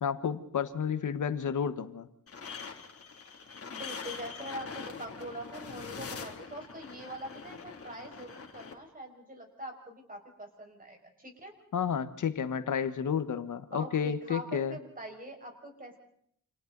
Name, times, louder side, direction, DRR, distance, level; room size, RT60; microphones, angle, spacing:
voice 1, 0.0-2.1 11.7-14.8, left 7 dB, 70° left, 11 dB, 1.5 m, -31 dB
sound 1, 2.3-8.7, left 5 dB, 45° left, 3.0 m, -43 dB
voice 2, 3.7-11.5 13.7-16.0, right 1 dB, 25° right, 2 dB, 6.0 m, -43 dB
29.5 x 27.5 x 4.1 m, 0.66 s
wide cardioid pair, 130°, 31 cm